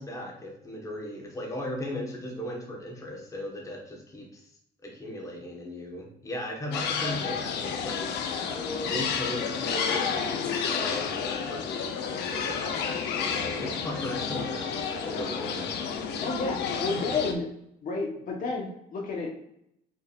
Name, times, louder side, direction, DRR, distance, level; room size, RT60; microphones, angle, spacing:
voice 1, 0.0-4.4 4.8-8.4 8.8-14.7 15.0-15.7, left 1 dB, 20° left, -1 dB, 1.4 m, -37 dB
sound 1, 6.7-17.3, left 6 dB, 80° left, 0.7 m, -31 dB
voice 2, 16.2-17.5 17.8-19.3, left 3 dB, 55° left, -1 dB, 1.2 m, -31 dB
5.6 x 3.7 x 2.5 m, 0.75 s
cardioid pair, 110°, 17 cm